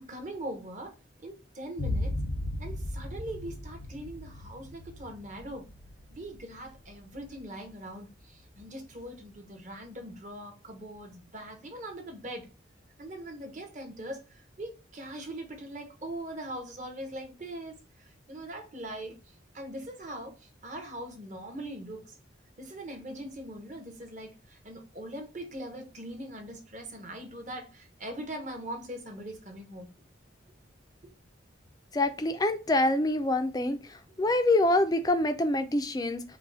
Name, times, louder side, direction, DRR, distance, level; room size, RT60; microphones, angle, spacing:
voice 1, 0.0-2.1 2.6-5.7 6.1-12.5 13.0-22.2 22.6-29.9, right 1 dB, 40° right, 1.1 m, -41 dB
sound 1, 1.8-9.2, left 1 dB, 90° left, 0.9 m, -37 dB
voice 2, 31.9-33.8 34.2-36.2, left 2 dB, 20° left, 0.4 m, -25 dB
5.4 x 2.3 x 4.1 m
head